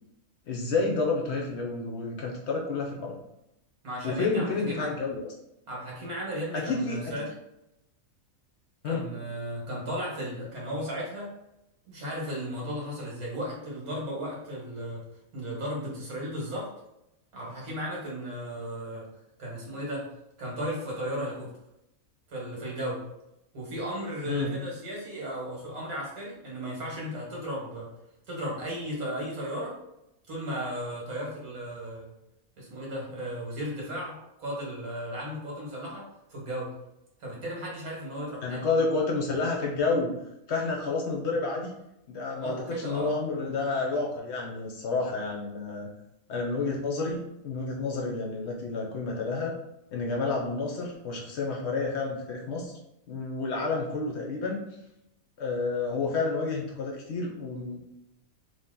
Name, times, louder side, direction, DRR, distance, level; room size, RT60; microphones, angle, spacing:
voice 1, 0.5-3.2 4.0-5.3 6.5-7.2 8.8-9.1 24.3-24.6 38.4-40.1 40.5-41.7 42.1-45.9 46.3-49.6 49.9-52.7 53.1-54.6 55.4-57.8, left 3 dB, 60° left, 0 dB, 0.8 m, -30 dB
voice 2, 3.8-4.9 5.7-7.3 8.8-11.3 11.9-15.0 15.3-16.7 17.3-19.1 19.4-20.1 20.4-21.5 22.3-23.0 23.5-27.9 28.3-29.8 30.3-32.1 32.6-36.7 37.2-38.6 42.4-43.1, equal, 80° right, -3 dB, 1.7 m, -35 dB
3.1 x 2.8 x 3.6 m, 0.84 s
omnidirectional pair, 1.5 m